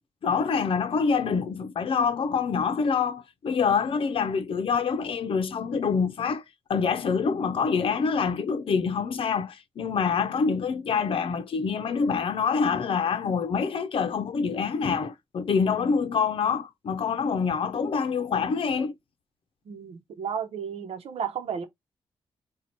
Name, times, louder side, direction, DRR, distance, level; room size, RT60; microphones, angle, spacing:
voice 1, 0.2-6.4 6.7-18.9, left 5 dB, 65° left, 0.6 m, -26 dB
voice 2, 19.7-21.6, right 7 dB, 85° right, 0.9 m, -33 dB
4.2 x 2.4 x 4.4 m
cardioid pair, 95°, 10 cm